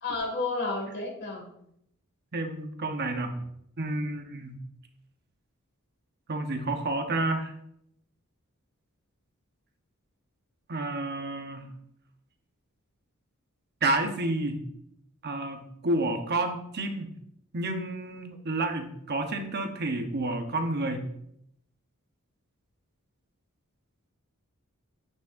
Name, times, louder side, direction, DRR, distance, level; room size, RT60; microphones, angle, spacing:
voice 1, 0.0-1.5, left 3 dB, 50° left, 1 dB, 2.0 m, -31 dB
voice 2, 2.3-3.3 3.8-4.6 6.3-7.5 10.7-11.7 13.8-14.6 15.2-17.1 17.5-21.0, right 2 dB, 50° right, 6 dB, 0.9 m, -30 dB
9.1 x 5.9 x 2.6 m, 0.74 s
head